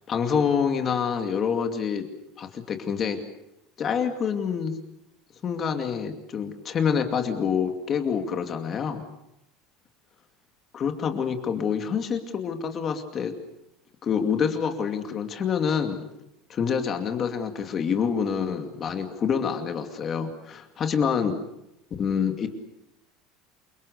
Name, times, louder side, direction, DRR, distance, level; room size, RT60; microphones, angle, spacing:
voice 1, 0.1-2.1 2.4-3.2 3.8-4.8 5.4-9.1 10.7-13.3 14.0-16.0 16.5-21.4 22.0-22.5, left 7 dB, 25° left, 6 dB, 2.4 m, -27 dB
29.0 x 25.0 x 6.7 m, 0.84 s
cardioid pair, 175°, 0 cm